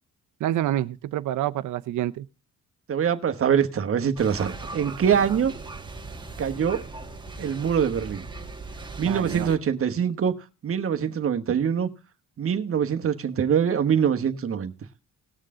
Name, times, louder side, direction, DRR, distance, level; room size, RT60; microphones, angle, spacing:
voice 1, 0.4-2.3 9.0-9.5, right 13 dB, 80° right, 0.7 m, -27 dB
voice 2, 2.9-5.5 6.4-6.8 7.4-8.3 9.0-10.3 10.6-11.9 12.4-14.7, right 8 dB, 45° right, 1.3 m, -24 dB
sound 1, 4.2-9.6, right 3 dB, 15° right, 1.7 m, -38 dB
19.0 x 6.5 x 3.7 m
cardioid pair, 90°, 30 cm